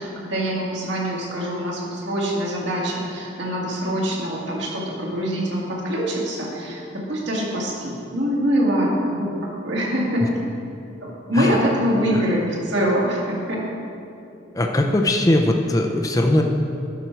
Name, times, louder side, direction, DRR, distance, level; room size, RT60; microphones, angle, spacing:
voice 1, 0.0-10.2 11.0-13.6, equal, 70° right, -4 dB, 2.0 m, -24 dB
voice 2, 14.5-16.4, left 1 dB, 20° left, 2 dB, 0.5 m, -20 dB
11.0 x 6.1 x 4.5 m, 2.6 s
head